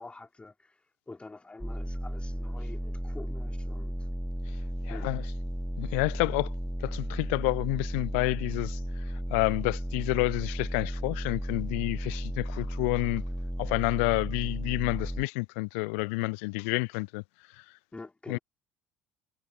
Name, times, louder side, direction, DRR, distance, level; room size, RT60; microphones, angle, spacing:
voice 1, 0.0-4.1 4.9-5.1 17.9-18.4, left 3 dB, 15° left, 3.5 m, -47 dB
sound 1, 1.6-15.2, equal, ahead, 1.6 m, -34 dB
voice 2, 4.8-5.2 5.8-6.5 6.8-8.8 9.3-13.2 13.6-17.2 17.6-17.7 18.3-18.4, left 31 dB, 60° left, 0.4 m, -29 dB
figure-of-eight pair, 60°, 8 cm